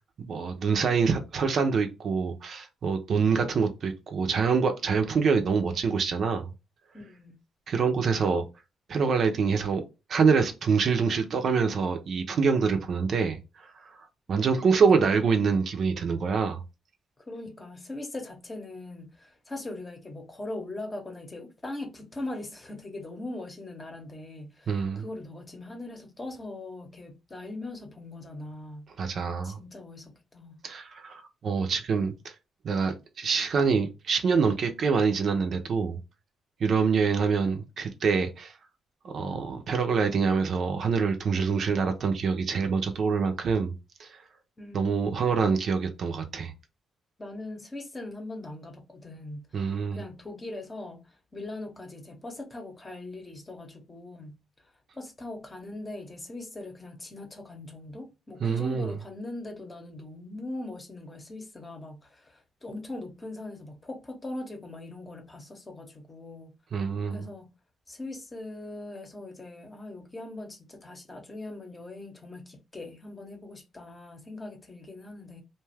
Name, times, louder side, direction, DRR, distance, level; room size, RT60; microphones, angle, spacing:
voice 1, 0.3-6.5 7.7-8.4 8.9-9.8 10.1-13.4 13.8-13.9 14.3-16.6 24.7-25.0 29.0-29.6 30.6-32.3 32.6-36.0 36.6-38.5 39.0-43.7 44.0-44.1 44.7-46.5 49.5-50.0 58.4-58.9 66.7-67.2, right 5 dB, 55° right, 0.5 m, -25 dB
voice 2, 6.9-7.4 14.3-14.7 17.2-29.2 29.4-30.6 44.6-45.2 47.2-54.4 54.9-66.6 67.1-67.5 67.9-75.4, left 2 dB, 25° left, 0.8 m, -41 dB
2.5 x 2.3 x 3.2 m
cardioid pair, 90°, 0 cm